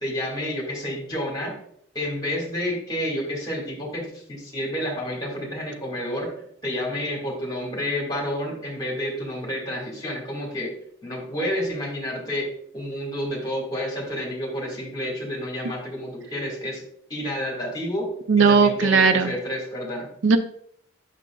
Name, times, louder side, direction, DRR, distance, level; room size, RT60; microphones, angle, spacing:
voice 1, 0.0-1.5 1.9-6.3 6.6-10.7 11.0-12.5 12.7-16.8 17.1-18.1 18.4-20.1, left 1 dB, 20° left, -1 dB, 1.7 m, -29 dB
voice 2, 18.3-19.3 20.2-20.4, right 5 dB, 65° right, 9 dB, 0.4 m, -17 dB
8.1 x 5.9 x 2.3 m, 0.67 s
head